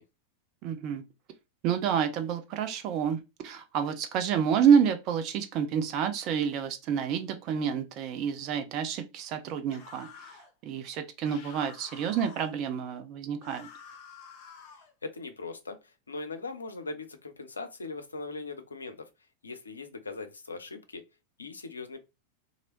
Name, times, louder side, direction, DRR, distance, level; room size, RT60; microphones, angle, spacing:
voice 1, 0.6-1.0 1.6-10.3 10.6-13.7, right 7 dB, 40° right, 0.4 m, -28 dB
sound 1, 9.7-10.5 11.2-12.5 13.4-14.9, left 6 dB, 40° left, 0.9 m, -49 dB
voice 2, 15.0-19.1 19.4-21.0 21.4-22.0, left 3 dB, 75° left, 0.5 m, -40 dB
2.9 x 2.6 x 2.9 m
figure-of-eight pair, 90°, 0 cm